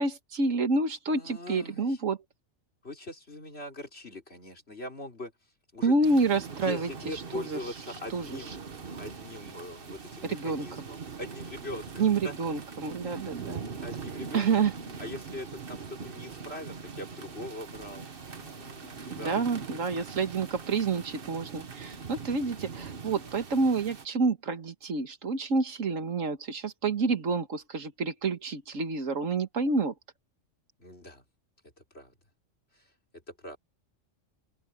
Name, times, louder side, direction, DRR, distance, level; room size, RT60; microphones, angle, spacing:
voice 1, 0.0-2.2 5.8-7.6 8.1-8.5 10.2-10.9 12.0-13.6 14.3-14.7 19.1-29.9, right 3 dB, 85° right, 2.0 m, -28 dB
voice 2, 1.1-2.0 2.8-5.9 6.6-8.6 9.0-12.3 13.0-13.1 13.8-14.7 15.0-19.4 30.8-31.2 31.6-32.1 32.7-33.6, left 2 dB, 55° left, 4.5 m, -42 dB
sound 1, 6.0-24.1, right 5 dB, 45° right, 1.4 m, -42 dB
open air
omnidirectional pair, 1.3 m